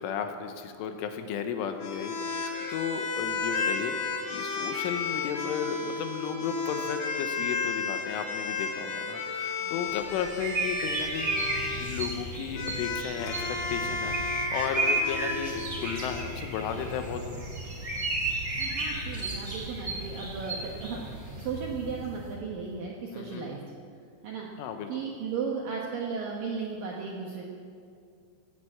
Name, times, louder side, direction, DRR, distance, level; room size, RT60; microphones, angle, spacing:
voice 1, 0.0-11.3 11.7-17.5 23.1-23.7 24.6-25.0, left 7 dB, 80° left, 6 dB, 3.3 m, -34 dB
sound 1, 1.8-11.9 12.5-16.3, left 4 dB, 60° left, 3.5 m, -33 dB
sound 2, 9.9-21.5, right 2 dB, 25° right, 2.8 m, -33 dB
sound 3, 10.8-22.3, right 1 dB, 25° left, 4.2 m, -42 dB
voice 2, 18.6-21.1 21.4-23.6 24.2-24.5 24.9-27.4, right 5 dB, 70° right, -2 dB, 2.1 m, -35 dB
16.5 x 10.0 x 8.6 m, 2.4 s
omnidirectional pair, 5.9 m